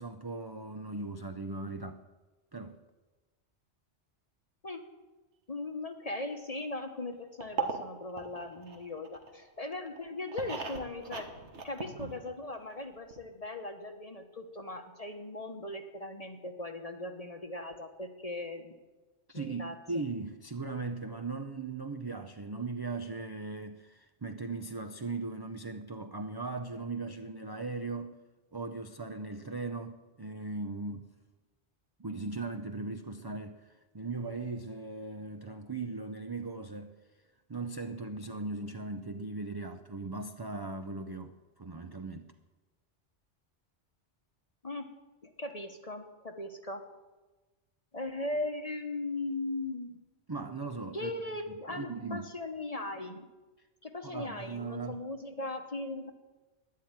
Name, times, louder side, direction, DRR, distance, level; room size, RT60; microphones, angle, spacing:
voice 1, 0.0-2.0 2.5-2.8 19.3-28.2 28.5-31.1 32.0-36.9 37.5-42.3 50.3-51.1 51.7-52.3 54.0-55.0, right 3 dB, 25° right, 0.5 m, -38 dB
voice 2, 5.5-11.3 11.6-18.7 19.3-19.7 44.6-44.9 45.2-46.8 47.9-50.0 50.9-53.3 53.8-56.1, left 2 dB, 35° left, 1.1 m, -38 dB
sound 1, 7.4-9.4 9.9-12.5 12.8-12.9 13.1-13.2, right 5 dB, 85° right, 1.8 m, -39 dB
12.5 x 10.5 x 8.8 m
omnidirectional pair, 1.1 m